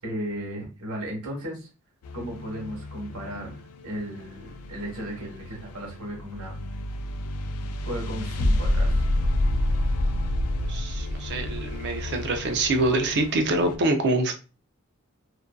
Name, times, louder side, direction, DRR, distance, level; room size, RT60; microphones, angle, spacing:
voice 1, 0.0-1.7 2.1-3.5 3.8-6.6 7.8-9.0, right 1 dB, 85° right, 1.1 m, -35 dB
sound 1, 2.0-13.8, left 1 dB, 85° left, 0.4 m, -29 dB
voice 2, 10.7-14.3, right 2 dB, 50° right, 0.4 m, -25 dB
2.5 x 2.3 x 2.2 m
head